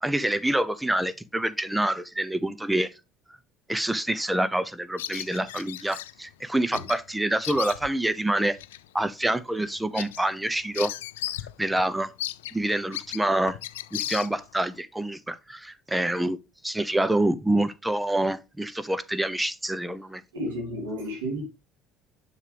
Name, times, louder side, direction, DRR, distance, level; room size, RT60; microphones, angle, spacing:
voice 1, 0.0-2.9 3.7-8.6 8.9-10.9 11.6-12.1 12.5-13.6 13.9-16.4 16.6-20.2, right 1 dB, 10° right, 0.7 m, -26 dB
Bird vocalization bird call bird song, 5.0-6.1 6.7-7.0 7.3-8.1 8.6-8.8 9.2-9.3 9.6-11.5 11.8-11.9 12.2-14.6, left 13 dB, 85° left, 0.4 m, -35 dB
voice 2, 20.3-21.5, equal, 90° right, 3.0 m, -32 dB
7.3 x 6.6 x 3.4 m
hypercardioid pair, 65°, 0 cm